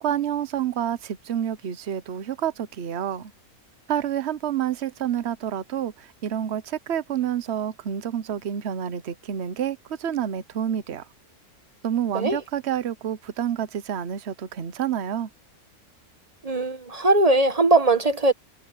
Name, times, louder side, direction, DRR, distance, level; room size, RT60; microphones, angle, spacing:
voice 1, 0.0-3.3 3.9-11.0 11.8-15.3, right 9 dB, 50° right, 1.1 m, -28 dB
voice 2, 16.4-18.3, right 2 dB, 25° right, 1.5 m, -20 dB
omnidirectional pair, 1.6 m